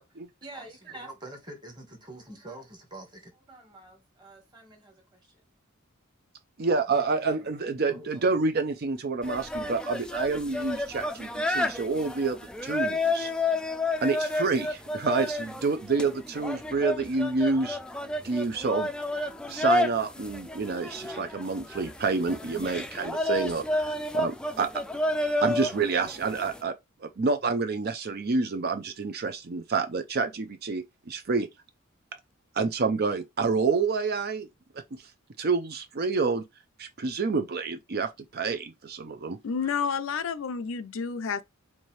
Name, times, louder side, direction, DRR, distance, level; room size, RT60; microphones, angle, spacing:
voice 1, 0.4-5.4 6.9-7.5 7.9-8.3, right 1 dB, 20° right, 1.5 m, -46 dB
voice 2, 6.6-13.3 14.0-17.8 18.2-18.9 19.5-24.7 25.4-26.7 27.0-31.5 32.5-34.5 34.9-35.0 35.4-36.4 36.8-39.4, right 4 dB, 50° right, 0.5 m, -28 dB
sound 1, 9.2-26.6, left 2 dB, 5° left, 0.4 m, -31 dB
voice 3, 39.4-41.4, left 6 dB, 65° left, 0.4 m, -30 dB
4.6 x 2.7 x 3.2 m
head